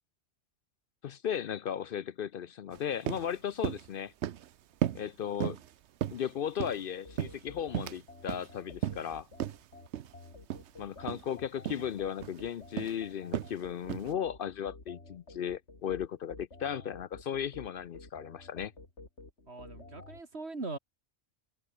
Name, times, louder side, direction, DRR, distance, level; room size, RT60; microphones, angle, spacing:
voice 1, 1.0-4.1 4.9-5.6 6.1-9.3 10.8-18.7, left 9 dB, 60° left, 0.7 m, -36 dB
sound 1, 2.7-2.8 3.1-3.3 3.6-3.9 4.2-4.5 4.8-5.1 5.4-5.7 6.0-6.8 7.2-8.0 8.3-8.5 8.8-9.1 9.4-9.6 9.9-10.1 10.5-10.7 11.0-11.2 11.7-11.9 12.2-12.4 12.8-13.0 13.3-13.6 13.9-14.1, right 10 dB, 90° right, 1.0 m, -34 dB
sound 2, 7.0-20.2, left 2 dB, 85° left, 4.1 m, -52 dB
voice 2, 19.5-20.8, right 3 dB, 70° right, 3.3 m, -40 dB
omnidirectional pair, 1.1 m